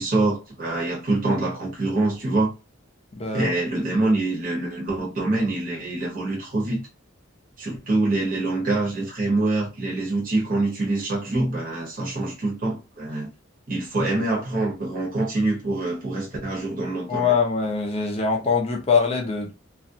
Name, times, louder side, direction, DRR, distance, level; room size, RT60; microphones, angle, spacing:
voice 1, 0.0-2.5 3.3-6.8 7.6-13.3 13.7-17.3, right 2 dB, 45° right, 0.8 m, -25 dB
voice 2, 3.2-3.5 17.1-19.5, left 5 dB, 30° left, 0.4 m, -23 dB
2.3 x 2.1 x 2.6 m
head